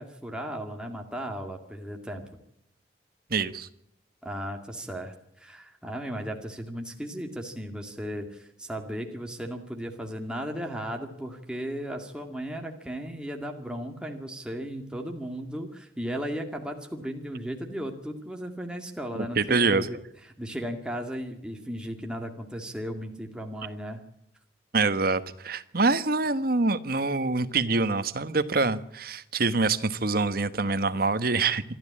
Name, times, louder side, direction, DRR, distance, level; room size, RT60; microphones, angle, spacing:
voice 1, 0.0-2.2 4.2-20.0 20.4-24.0, equal, 5° right, 2 dB, 2.1 m, -36 dB
voice 2, 3.3-3.7 19.1-19.9 24.7-31.6, right 3 dB, 55° right, 12 dB, 1.3 m, -25 dB
26.5 x 12.5 x 8.6 m, 0.81 s
head